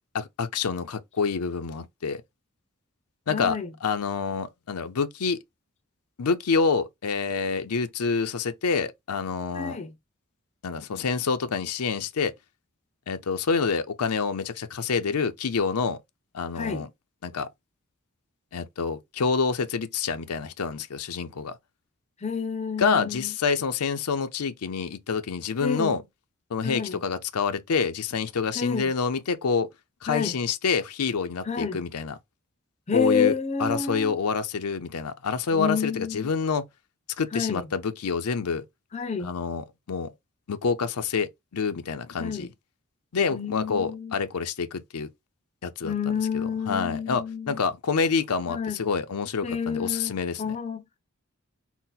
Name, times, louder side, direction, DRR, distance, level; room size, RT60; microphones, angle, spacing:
voice 1, 0.1-2.2 3.3-5.4 6.2-9.8 10.6-12.3 13.1-16.0 16.3-16.9 17.2-17.5 18.5-21.5 22.8-26.0 26.5-29.7 30.0-32.1 32.9-33.3 33.6-36.6 37.2-38.7 39.2-40.1 40.5-42.5 43.1-45.1 45.6-50.4, left 5 dB, 90° left, 0.6 m, -27 dB
voice 2, 3.3-3.7 9.5-9.9 16.5-16.9 22.2-23.3 25.6-26.0 26.6-27.0 28.5-28.9 30.1-30.4 31.4-31.8 32.9-34.2 35.5-36.3 37.3-37.7 38.9-39.3 42.2-42.5 43.2-44.2 45.8-47.6 48.5-48.8 49.4-51.0, left 6 dB, 30° left, 0.5 m, -29 dB
4.0 x 2.1 x 3.9 m
head